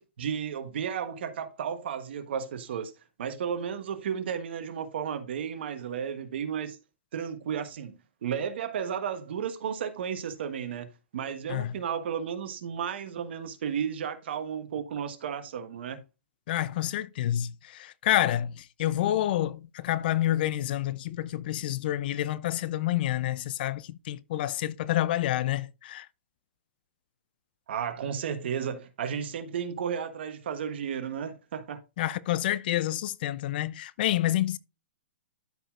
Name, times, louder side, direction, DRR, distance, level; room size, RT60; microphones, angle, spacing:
voice 1, 0.0-2.9 3.2-6.8 7.1-10.9 11.1-16.0 27.7-31.8, right 7 dB, 65° right, 1.4 m, -33 dB
voice 2, 16.5-26.1 32.0-34.6, left 13 dB, 50° left, 0.5 m, -28 dB
12.5 x 5.0 x 2.5 m
hypercardioid pair, 140°, 6 cm